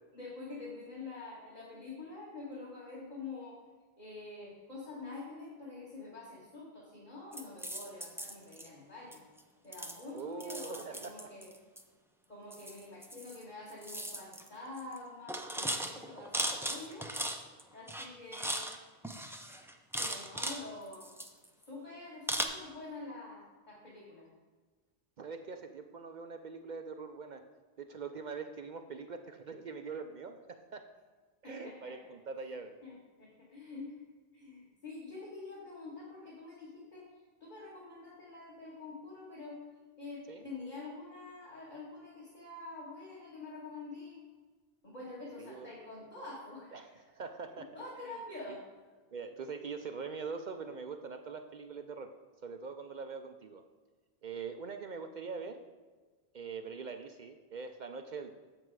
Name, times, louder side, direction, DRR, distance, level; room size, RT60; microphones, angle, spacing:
voice 1, 0.1-3.5 4.0-9.2 9.6-11.5 12.3-17.1 17.7-18.6 20.0-21.1 21.7-24.3 31.4-32.2 32.5-32.6 32.8-33.9 34.3-37.1 37.4-39.6 40.0-44.2 44.8-47.0 47.7-48.6, left 3 dB, 40° left, -7 dB, 1.9 m, -46 dB
sound 1, 7.3-8.7 9.1-9.4 9.7-11.8 12.5-13.4 13.7-14.5 14.8-15.0 15.3-17.6 17.9-18.8 19.0-20.6 20.9-21.6 22.3-22.4, right 1 dB, 5° right, 0.4 m, -38 dB
voice 2, 10.1-11.3 25.2-27.4 27.8-30.8 31.4-32.7 40.3-40.4 45.4-45.7 46.7-47.7 48.0-48.2 48.5-48.6 49.1-52.1 52.4-53.6 54.2-55.6 56.3-58.3, right 5 dB, 55° right, 6 dB, 0.6 m, -43 dB
7.8 x 7.5 x 4.7 m, 1.4 s
omnidirectional pair, 1.1 m